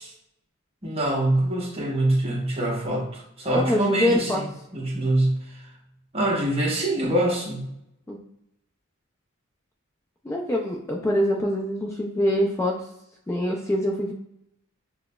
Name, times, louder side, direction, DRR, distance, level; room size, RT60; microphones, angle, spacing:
voice 1, 0.8-5.7 6.1-7.7, right 1 dB, 30° right, -3 dB, 0.9 m, -25 dB
voice 2, 3.5-4.4 8.1-8.2 10.2-12.7 13.3-14.1, left 1 dB, 15° left, -1 dB, 0.3 m, -24 dB
5.8 x 2.0 x 2.2 m, 0.80 s
head